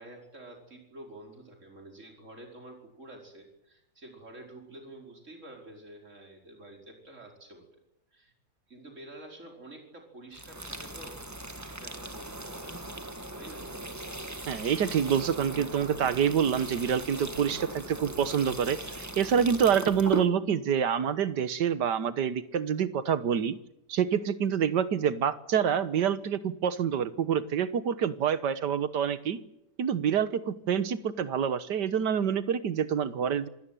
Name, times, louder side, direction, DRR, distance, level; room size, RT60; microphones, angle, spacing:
voice 1, 0.0-7.7 8.1-8.3 8.7-11.2 11.6-13.6, right 1 dB, 45° right, 2 dB, 5.4 m, -49 dB
sound 1, 10.3-20.3, right 1 dB, 10° right, 1.4 m, -39 dB
voice 2, 14.5-23.6 23.9-29.4 29.8-33.5, right 8 dB, 90° right, 14 dB, 1.8 m, -27 dB
26.5 x 17.0 x 9.2 m, 0.84 s
omnidirectional pair, 1.8 m